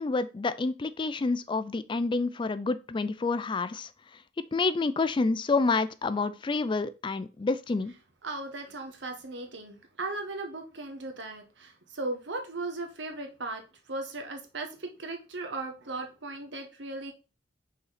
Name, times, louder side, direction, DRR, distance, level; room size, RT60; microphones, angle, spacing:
voice 1, 0.0-3.9 4.5-7.9, left 3 dB, 25° left, 0.4 m, -28 dB
voice 2, 8.2-13.6 13.9-17.1, right 2 dB, 75° right, 1.3 m, -37 dB
5.6 x 4.2 x 4.1 m
head